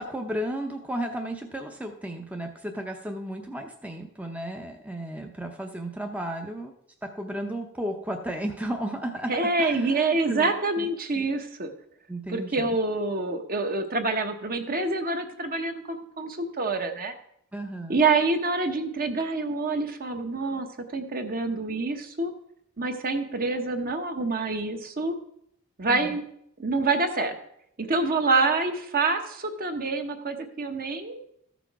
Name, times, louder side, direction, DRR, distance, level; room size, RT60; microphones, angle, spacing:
voice 1, 0.0-6.7 7.0-9.3 9.6-10.9 11.2-11.3 12.1-12.8 17.5-18.0 25.9-26.2, right 1 dB, 5° right, 3 dB, 0.6 m, -34 dB
voice 2, 9.3-11.7 12.3-17.1 17.9-22.3 22.8-25.1 25.8-26.2 26.6-27.4 27.8-31.2, right 3 dB, 40° right, 6 dB, 1.0 m, -26 dB
14.0 x 6.1 x 4.7 m, 0.72 s
head